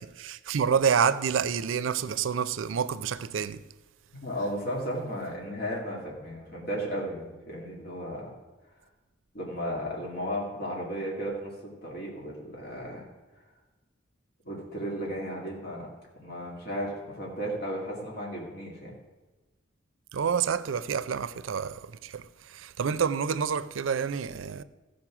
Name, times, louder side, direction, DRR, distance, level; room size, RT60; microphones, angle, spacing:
voice 1, 0.0-3.6 20.1-24.6, right 7 dB, 90° right, 0.4 m, -28 dB
voice 2, 4.2-8.3 9.3-11.5 11.8-13.1 14.4-15.9 16.2-18.9, equal, 55° left, 2.4 m, -34 dB
15.0 x 5.2 x 6.0 m
head